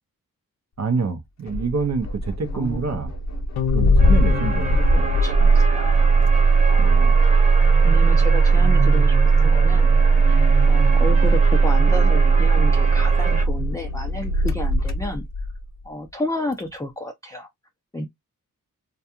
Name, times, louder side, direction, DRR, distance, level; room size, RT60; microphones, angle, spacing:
voice 1, 0.8-3.1 3.7-5.5 6.8-7.1, right 4 dB, 50° right, 0.6 m, -27 dB
Engine starting, 1.5-15.6, right 3 dB, 50° left, 0.7 m, -17 dB
voice 2, 2.5-3.1 4.3-6.4 6.7-7.2 7.8-9.9 10.7-15.2 15.8-17.5 17.9-18.1, left 1 dB, 10° left, 0.5 m, -32 dB
sound 1, 3.6-6.2, left 9 dB, 85° left, 0.5 m, -30 dB
sound 2, 4.0-13.4, right 2 dB, 20° right, 1.1 m, -30 dB
2.3 x 2.3 x 2.8 m
cardioid pair, 45°, 36 cm